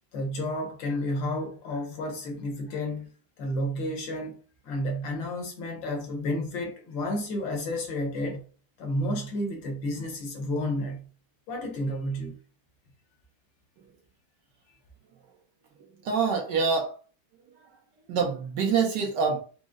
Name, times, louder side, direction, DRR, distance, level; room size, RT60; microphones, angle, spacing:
voice 1, 0.1-3.1 3.4-4.4 4.6-8.4 8.8-11.0 11.5-12.3, left 1 dB, 70° left, 1.7 m, -31 dB
voice 2, 15.8-16.9 18.1-19.4, right 5 dB, 65° right, 1.3 m, -26 dB
5.1 x 2.0 x 3.6 m
omnidirectional pair, 2.2 m